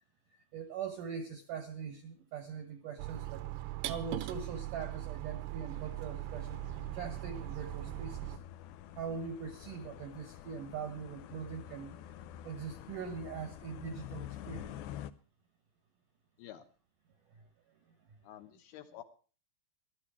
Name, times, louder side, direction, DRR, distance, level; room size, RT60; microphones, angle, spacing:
voice 1, 0.3-3.5 3.8-6.7 6.9-8.4 8.9-12.0 12.4-14.8 17.3-17.4 18.1-18.2, right 6 dB, 75° right, 8 dB, 2.0 m, -42 dB
sound 1, 3.0-8.4, right 16 dB, 90° right, 3.3 m, -40 dB
sound 2, 5.7-15.1, left 11 dB, 90° left, 2.1 m, -48 dB
voice 2, 18.2-19.0, left 12 dB, 70° left, 8 dB, 2.7 m, -49 dB
16.0 x 12.5 x 4.8 m, 0.38 s
omnidirectional pair, 5.3 m